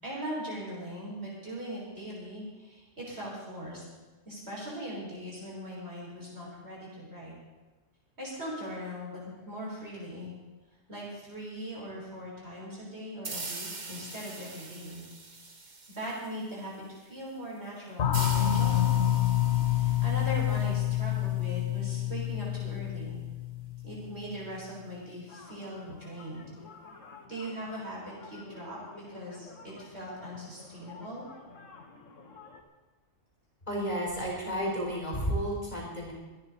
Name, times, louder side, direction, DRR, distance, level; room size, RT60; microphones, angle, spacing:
voice 1, 0.0-3.8 4.2-7.3 8.2-10.3 10.9-15.0 15.4-15.6 15.9-19.2 19.6-23.2 23.8-26.5 27.3-31.2, equal, 55° right, -5 dB, 6.4 m, -40 dB
sound 1, 13.2-16.6 18.1-21.6, right 3 dB, 40° right, 1.4 m, -43 dB
sound 2, 18.0-24.3, left 12 dB, 65° left, 1.1 m, -28 dB
sound 3, 25.3-32.6, left 4 dB, 85° left, 1.9 m, -51 dB
voice 2, 33.7-36.1, equal, 35° left, -3 dB, 4.6 m, -32 dB
25.0 x 10.0 x 4.3 m, 1.2 s
omnidirectional pair, 1.3 m